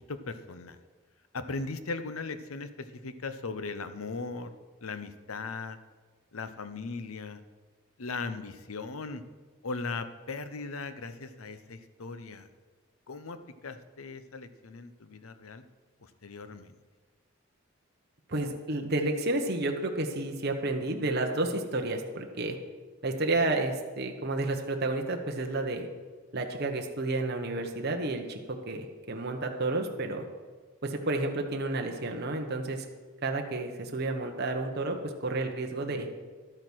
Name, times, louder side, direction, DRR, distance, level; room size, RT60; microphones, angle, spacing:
voice 1, 0.1-0.8 1.3-4.5 4.8-5.8 6.3-7.4 8.0-9.2 9.6-12.5 13.1-15.6 16.0-16.8, left 3 dB, 85° left, 11 dB, 0.8 m, -38 dB
voice 2, 18.3-22.6 23.0-25.9 26.3-28.4 28.7-30.3 30.8-32.9 33.2-36.1, right 2 dB, 50° right, 3 dB, 1.1 m, -31 dB
12.0 x 8.9 x 6.2 m, 1.4 s
head